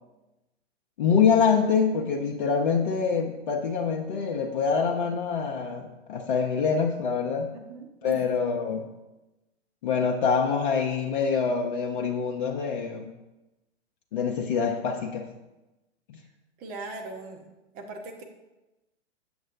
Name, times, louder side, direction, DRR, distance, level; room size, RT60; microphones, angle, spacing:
voice 1, 1.0-7.5 8.0-8.8 9.8-13.1 14.1-15.3 16.1-16.2, left 6 dB, 45° left, 2 dB, 0.7 m, -25 dB
voice 2, 7.5-8.3 16.6-17.5 17.7-18.2, right 3 dB, 25° right, 3 dB, 0.9 m, -39 dB
7.4 x 7.0 x 2.6 m, 1.0 s
figure-of-eight pair, 115°, 35 cm